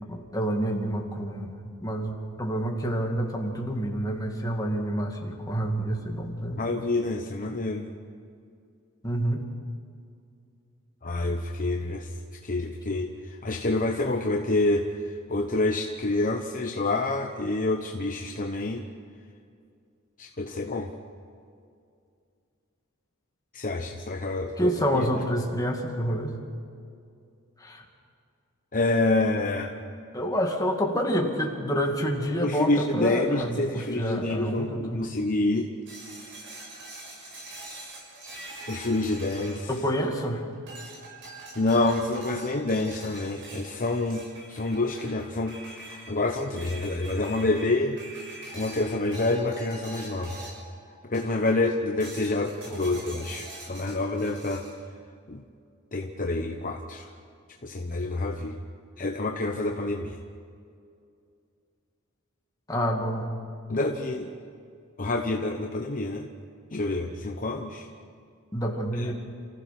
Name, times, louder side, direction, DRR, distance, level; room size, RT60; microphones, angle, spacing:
voice 1, 0.0-6.6 9.0-9.5 24.6-26.4 27.6-27.8 30.1-35.1 39.7-40.4 52.7-53.0 62.7-63.3 67.1-67.2 68.5-69.1, equal, 15° left, 1 dB, 2.4 m, -28 dB
voice 2, 6.6-7.9 11.0-12.1 12.4-14.9 15.3-18.8 20.2-20.9 23.5-25.1 28.7-29.7 32.4-35.7 38.7-39.7 41.5-44.2 44.5-45.6 45.8-48.0 48.5-50.4 51.1-54.6 55.3-55.4 55.9-57.1 57.6-58.6 59.0-60.2 63.7-64.3 65.0-66.3 66.7-67.9 69.0-69.1, left 2 dB, 40° left, 3 dB, 1.0 m, -27 dB
sound 1, 35.9-40.2 40.7-50.7 51.1-51.6 52.0-54.7, right 2 dB, 60° right, 6.8 m, -44 dB
29.0 x 15.5 x 6.1 m, 2.4 s
head